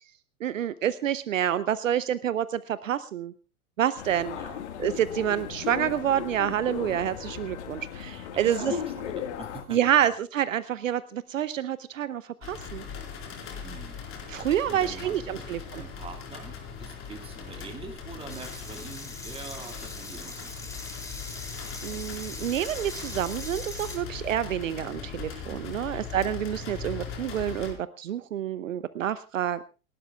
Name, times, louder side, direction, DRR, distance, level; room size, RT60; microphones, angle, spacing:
voice 1, 0.4-3.3 3.8-4.4 4.8-8.7 9.7-12.8 14.3-15.8 21.8-29.6, right 10 dB, 65° right, 16 dB, 0.8 m, -28 dB
sound 1, 4.0-9.6, left 9 dB, 50° left, 1.9 m, -36 dB
voice 2, 4.4-4.7 8.3-9.8 13.6-14.0 14.7-15.5 15.7-20.7 25.8-26.1, right 4 dB, 15° right, 4 dB, 2.3 m, -44 dB
sound 2, 12.4-27.7, left 6 dB, 30° left, 4.5 m, -40 dB
sound 3, 18.3-24.0, left 2 dB, 5° left, 2.9 m, -41 dB
28.5 x 12.0 x 2.4 m, 0.33 s
figure-of-eight pair, 100°, 43 cm